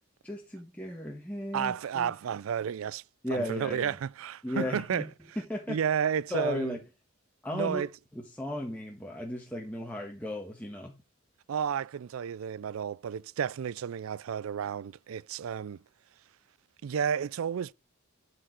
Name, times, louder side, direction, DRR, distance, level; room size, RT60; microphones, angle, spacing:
voice 1, 0.2-2.1 3.2-4.0 4.4-5.0 5.5-5.8 6.3-6.8 7.4-7.8 8.1-10.9, left 1 dB, 5° left, 1.4 m, -35 dB
voice 2, 1.5-3.0 3.3-5.1 5.7-6.8 7.5-7.9 11.5-15.8 16.8-17.7, right 8 dB, 85° right, 0.4 m, -32 dB
12.5 x 4.6 x 4.6 m
head